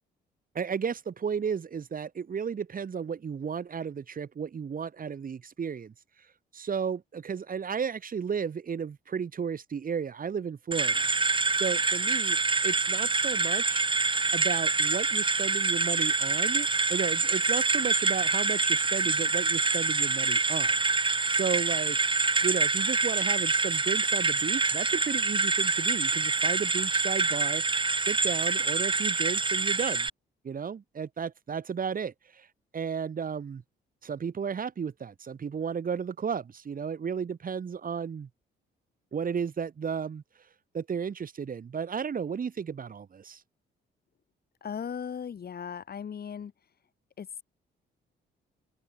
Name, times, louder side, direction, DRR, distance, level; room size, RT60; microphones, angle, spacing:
voice 1, 0.5-5.9 6.5-11.1 11.5-12.4 12.6-13.8 14.3-20.8 21.3-22.0 22.4-27.6 28.0-30.1 30.4-32.5 32.7-33.6 34.0-38.3 39.1-40.2 40.7-43.4, right 6 dB, 45° right, 4.0 m, -33 dB
sound 1, 10.7-30.1, right 4 dB, 25° right, 3.1 m, -26 dB
voice 2, 44.6-46.5 47.2-47.4, left 7 dB, 50° left, 6.4 m, -37 dB
cardioid pair, 90°, 20 cm